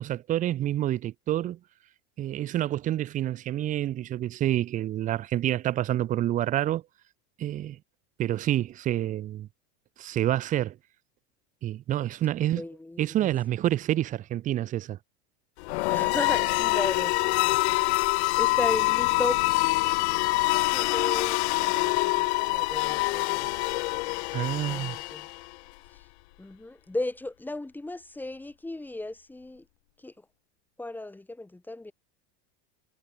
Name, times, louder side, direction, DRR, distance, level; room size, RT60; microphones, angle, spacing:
voice 1, 0.0-1.6 2.2-6.8 7.4-7.8 8.2-9.5 10.0-10.8 11.6-12.6 13.0-15.0 24.3-25.0, right 13 dB, 25° right, 0.6 m, -28 dB
voice 2, 12.5-13.3 15.9-19.4 20.6-23.5 24.6-25.3 26.4-29.6 30.0-30.1 30.8-31.9, left 2 dB, 5° left, 2.5 m, -36 dB
sound 1, 15.6-25.5, left 23 dB, 75° left, 0.7 m, -25 dB
supercardioid pair, 155°, 33 cm